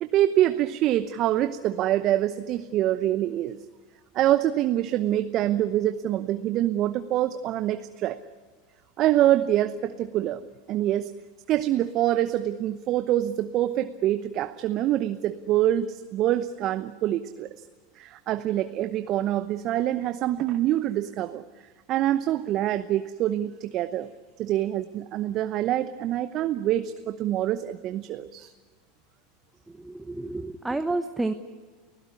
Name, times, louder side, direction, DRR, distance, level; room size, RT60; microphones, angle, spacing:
voice 1, 0.0-3.6 4.1-8.2 9.0-11.1 11.5-17.5 18.0-21.4 21.9-24.1 24.4-28.5, right 13 dB, 45° right, 11 dB, 0.9 m, -25 dB
voice 2, 29.8-31.3, right 2 dB, 10° right, 8 dB, 1.1 m, -29 dB
29.5 x 16.0 x 9.8 m, 1.5 s
hypercardioid pair, 85°, 0 cm